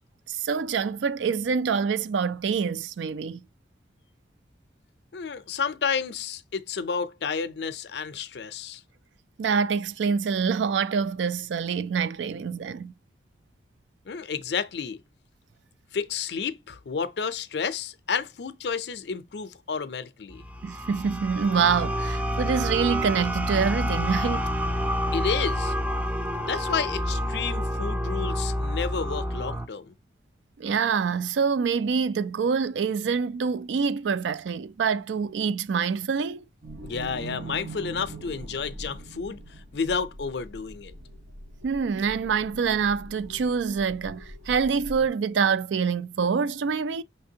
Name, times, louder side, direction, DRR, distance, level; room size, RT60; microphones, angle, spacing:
voice 1, 0.3-3.4 9.4-12.9 20.6-24.5 30.6-36.4 41.6-47.0, right 6 dB, 85° right, 0.4 m, -26 dB
voice 2, 5.1-8.8 14.1-15.0 15.9-20.4 25.1-25.7 26.4-29.9 36.8-40.9, left 6 dB, 65° left, 0.5 m, -31 dB
sound 1, 20.3-29.7, equal, 10° right, 0.4 m, -28 dB
sound 2, 36.6-45.1, right 2 dB, 65° right, 1.0 m, -42 dB
5.8 x 3.3 x 2.7 m
head